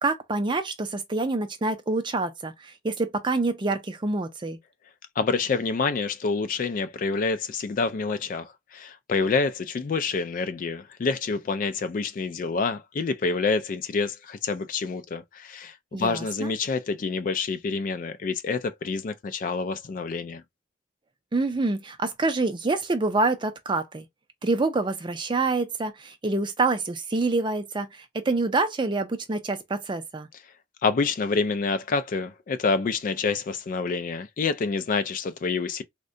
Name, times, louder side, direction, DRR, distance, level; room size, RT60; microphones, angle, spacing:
voice 1, 0.0-4.6 15.9-16.5 21.3-24.1 24.4-30.3, right 3 dB, 25° right, 0.4 m, -26 dB
voice 2, 5.2-20.4 30.8-35.8, left 4 dB, 45° left, 0.3 m, -27 dB
3.6 x 2.2 x 2.5 m
head